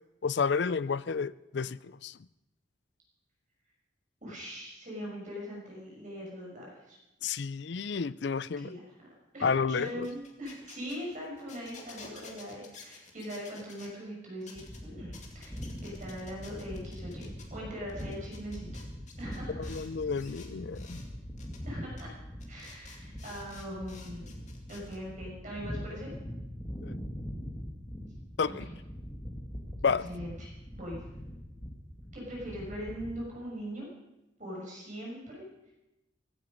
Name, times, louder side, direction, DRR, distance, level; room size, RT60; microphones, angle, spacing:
voice 1, 0.2-2.2 7.2-8.7 9.4-10.1 19.5-21.0 26.8-26.9 28.4-28.7 29.8-30.1, left 5 dB, 60° left, 0.4 m, -31 dB
voice 2, 4.2-7.0 8.6-9.1 9.3-18.8 19.2-19.7 21.6-22.1 22.5-24.3 24.7-26.1 28.5-28.6 29.8-31.0 32.1-33.9 34.4-35.7, equal, 40° right, 6.1 m, -41 dB
sound 1, 10.0-13.9 14.4-14.8 15.1-17.5 17.9-19.9 20.2-21.1 21.4-21.6 22.0-22.1 22.4-25.0, left 4 dB, 40° left, 2.3 m, -52 dB
sound 2, 14.6-33.2, equal, 15° left, 2.2 m, -42 dB
16.5 x 16.0 x 5.3 m
head